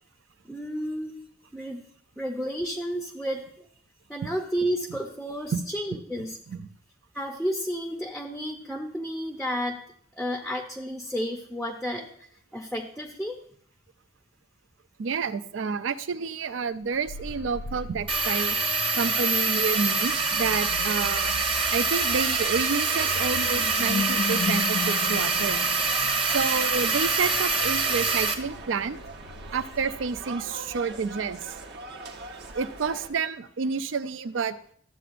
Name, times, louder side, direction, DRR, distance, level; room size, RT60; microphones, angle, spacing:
voice 1, 0.5-1.1 1.5-1.9 2.2-3.7 4.1-6.4 7.1-9.8 10.1-12.1 12.5-13.4, equal, ahead, 2 dB, 0.6 m, -31 dB
voice 2, 15.0-18.6 19.0-21.4 21.7-25.7 26.3-29.0 29.5-31.4 32.5-34.5, right 5 dB, 85° right, 13 dB, 0.4 m, -29 dB
sound 1, 16.8-30.3, left 5 dB, 60° left, 0.3 m, -38 dB
sound 2, 18.1-28.3, right 4 dB, 30° right, 0.9 m, -25 dB
sound 3, 22.8-33.1, right 3 dB, 60° right, 1.0 m, -42 dB
12.5 x 7.7 x 2.5 m, 0.62 s
head